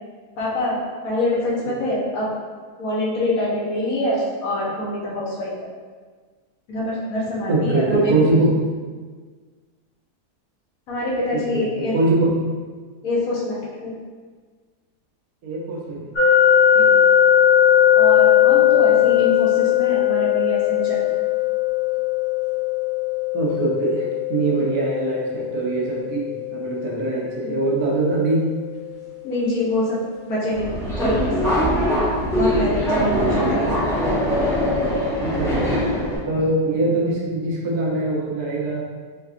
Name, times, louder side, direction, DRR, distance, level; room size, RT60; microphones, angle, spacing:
voice 1, 0.4-0.8 1.0-2.3 2.8-5.5 6.7-8.2 10.9-12.0 13.0-13.9 16.7-16.9 17.9-21.1 27.4-27.6 29.2-30.0 30.3-30.7 31.0-31.5 32.3-33.7, left 1 dB, 65° left, -5 dB, 1.2 m, -25 dB
voice 2, 7.5-8.6 11.3-12.3 15.4-16.1 18.8-19.0 23.3-28.5 33.1-33.9 35.2-35.8 36.3-38.8, right 2 dB, 75° right, -3 dB, 1.1 m, -23 dB
sound 1, 16.1-29.0, left 10 dB, 40° left, 1.1 m, -19 dB
Subway metro underground, 30.5-36.2, equal, ahead, 0.8 m, -22 dB
3.3 x 3.3 x 2.5 m, 1.5 s
omnidirectional pair, 1.7 m